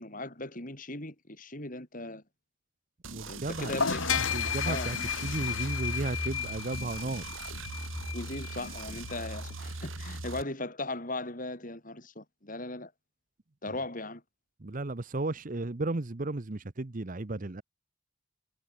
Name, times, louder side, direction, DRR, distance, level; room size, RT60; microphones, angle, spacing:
voice 1, 0.0-2.2 3.3-4.2 4.6-4.9 8.1-12.9 13.6-14.2, left 2 dB, 40° left, 4.6 m, -38 dB
sound 1, 3.0-10.4, right 2 dB, 75° right, 3.2 m, -40 dB
voice 2, 3.1-3.8 4.3-7.2 13.7-13.8 14.6-17.6, right 2 dB, 40° right, 0.8 m, -34 dB
sound 2, 3.4-10.2, left 4 dB, 65° left, 2.7 m, -38 dB
sound 3, 4.1-9.7, left 8 dB, 90° left, 1.7 m, -36 dB
head